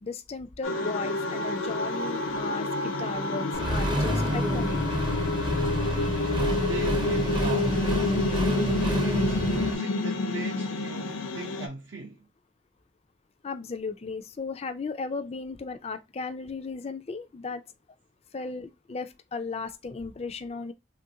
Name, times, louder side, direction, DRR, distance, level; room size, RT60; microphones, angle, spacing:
voice 1, 0.0-4.8 5.8-6.2 13.4-17.6 18.3-20.7, left 4 dB, 30° left, 0.3 m, -35 dB
sound 1, 0.6-11.7, left 2 dB, 90° left, 0.6 m, -29 dB
Accelerating revving vroom, 3.5-9.7, equal, 25° right, 0.5 m, -28 dB
voice 2, 6.4-7.8 9.0-12.3, right 3 dB, 70° right, 0.6 m, -39 dB
3.2 x 2.5 x 2.7 m
head